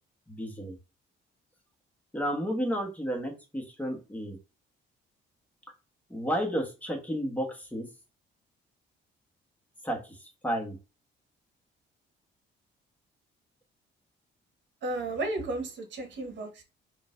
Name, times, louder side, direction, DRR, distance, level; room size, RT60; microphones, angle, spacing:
voice 1, 0.3-0.8 2.1-4.4 6.1-7.9 9.8-10.8, equal, 10° left, 1.2 m, -32 dB
voice 2, 14.8-16.6, right 2 dB, 65° right, 1.1 m, -33 dB
3.8 x 2.5 x 2.5 m
cardioid pair, 90°, 20 cm